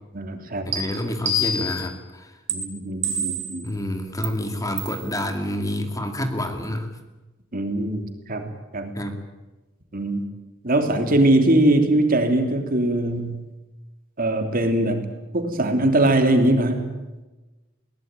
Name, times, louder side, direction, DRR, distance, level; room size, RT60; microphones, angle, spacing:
voice 1, 0.1-0.7 2.5-3.7 7.5-8.9 9.9-10.3 10.6-13.4 14.2-17.0, right 1 dB, 45° right, 6 dB, 3.0 m, -21 dB
voice 2, 0.7-2.4 3.6-6.9 8.9-9.2, left 1 dB, 15° left, 6 dB, 2.3 m, -28 dB
sound 1, 0.7-0.8 1.3-1.9 2.5-2.6 3.0-3.6 4.2-4.3 4.8-5.0, equal, 60° right, 4.6 m, -25 dB
21.5 x 19.0 x 9.1 m, 1.1 s
head